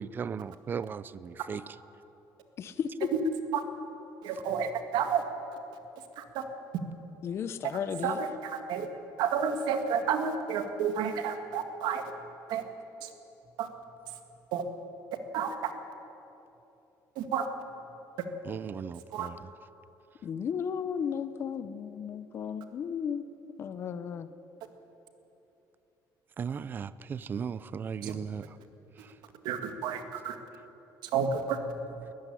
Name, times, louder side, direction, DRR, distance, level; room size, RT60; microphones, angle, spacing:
voice 1, 0.0-1.6 18.4-19.5 26.4-28.6 29.0-29.1 32.0-32.1, right 6 dB, 25° right, 17 dB, 0.4 m, -37 dB
voice 2, 2.6-3.1 7.2-8.2 20.2-23.2 23.6-24.3, left 7 dB, 35° left, 12 dB, 0.6 m, -34 dB
voice 3, 4.2-5.2 6.2-6.4 8.0-8.9 9.2-12.0 12.5-12.6 13.0-13.1 13.6-13.7 14.5-14.6 15.3-15.7 17.2-17.5 19.1-19.3 28.0-28.1 29.4-30.4 31.1-31.6, right 7 dB, 80° right, 7 dB, 1.9 m, -30 dB
20.0 x 14.0 x 10.0 m, 3.0 s
cardioid pair, 175°, 7 cm